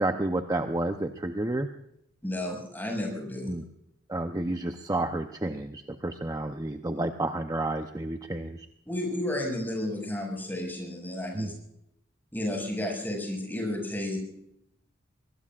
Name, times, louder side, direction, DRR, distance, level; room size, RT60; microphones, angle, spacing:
voice 1, 0.0-1.7 3.5-3.6 4.1-8.7 11.3-11.5, right 2 dB, 20° right, 6 dB, 0.7 m, -30 dB
voice 2, 2.2-3.5 8.9-11.5 12.3-14.2, left 1 dB, 10° left, 0 dB, 5.9 m, -32 dB
23.5 x 20.0 x 2.5 m, 0.77 s
head